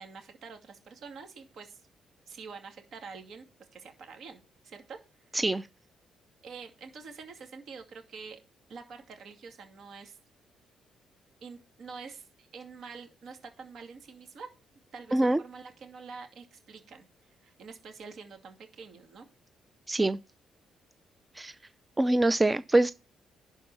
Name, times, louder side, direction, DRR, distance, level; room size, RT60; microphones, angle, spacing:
voice 1, 0.0-1.8 2.3-3.4 3.7-4.4 4.6-5.3 6.4-8.4 8.7-10.2 11.4-14.5 14.9-19.3, right 5 dB, 65° right, 2.4 m, -46 dB
voice 2, 5.3-5.7 15.1-15.4 19.9-20.2 21.4-21.5 22.0-22.9, right 2 dB, 15° right, 0.4 m, -24 dB
11.5 x 4.5 x 5.5 m
cardioid pair, 90°, 0 cm